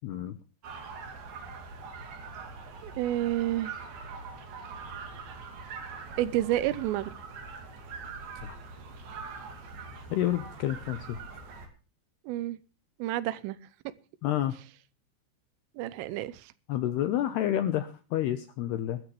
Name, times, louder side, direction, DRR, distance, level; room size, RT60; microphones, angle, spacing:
voice 1, 0.0-0.4 8.4-8.6 10.1-11.2 14.2-14.6 16.7-19.0, left 12 dB, 80° left, 11 dB, 2.4 m, -29 dB
sound 1, 0.6-11.7, right 4 dB, 50° right, 4.2 m, -43 dB
voice 2, 2.8-3.7 6.2-7.1 12.3-12.6 13.0-13.6 15.8-16.5, right 14 dB, 80° right, 18 dB, 3.4 m, -29 dB
21.0 x 13.5 x 3.2 m, 0.36 s
omnidirectional pair, 5.9 m